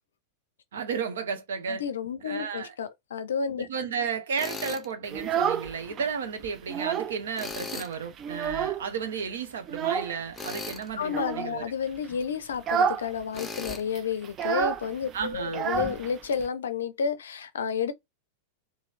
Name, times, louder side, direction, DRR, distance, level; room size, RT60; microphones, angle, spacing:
voice 1, 0.7-1.8 2.2-2.7 3.7-11.6 15.1-15.7, right 6 dB, 65° right, 0.7 m, -33 dB
voice 2, 1.7-3.7 11.0-17.9, left 6 dB, 65° left, 0.5 m, -31 dB
Tools, 4.4-4.9 7.3-7.9 10.3-10.9 13.3-13.8, left 3 dB, 10° left, 0.6 m, -37 dB
Child speech kid speaking, 5.0-6.1 6.4-7.2 7.5-7.6 7.9-9.0 9.7-10.2 11.0-11.5 12.0-12.2 12.5-13.1 13.3-13.4 13.7-16.5, right 7 dB, 30° right, 0.4 m, -29 dB
3.0 x 2.6 x 2.5 m
figure-of-eight pair, 90°, 0 cm